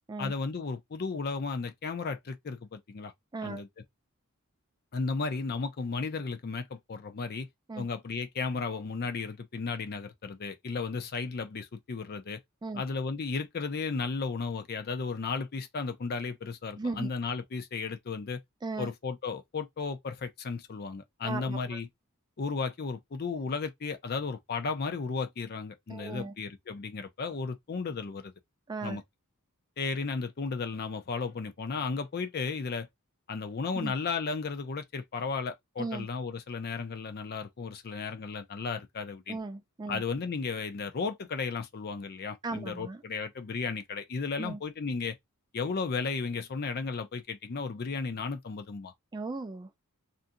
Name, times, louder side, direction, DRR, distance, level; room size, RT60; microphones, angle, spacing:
voice 1, 0.2-3.1 3.4-3.7 4.9-7.5 7.8-12.4 12.8-18.4 18.8-21.9 22.4-28.3 28.8-29.0 29.8-32.9 33.3-39.4 39.9-45.2 45.5-48.9, left 4 dB, 45° left, 0.5 m, -34 dB
voice 2, 3.3-3.6 7.7-7.9 12.6-12.8 16.7-17.1 18.6-18.9 21.2-21.8 25.9-26.3 28.7-29.0 33.7-33.9 35.8-36.1 39.3-40.0 42.4-43.0 44.4-44.6 49.1-49.8, right 3 dB, 20° right, 0.3 m, -37 dB
2.6 x 2.4 x 2.6 m
head